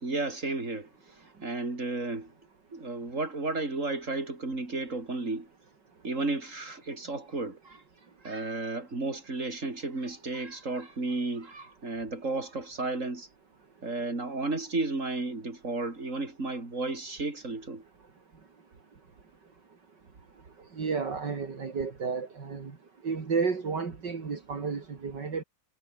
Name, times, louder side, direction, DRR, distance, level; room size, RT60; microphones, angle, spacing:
voice 1, 0.0-2.3 2.7-5.5 6.0-7.8 8.2-13.3 13.8-17.8, right 3 dB, 40° right, 5.0 m, -33 dB
voice 2, 20.8-22.7 23.0-25.4, right 5 dB, 65° right, 3.4 m, -32 dB
omnidirectional pair, 2.1 m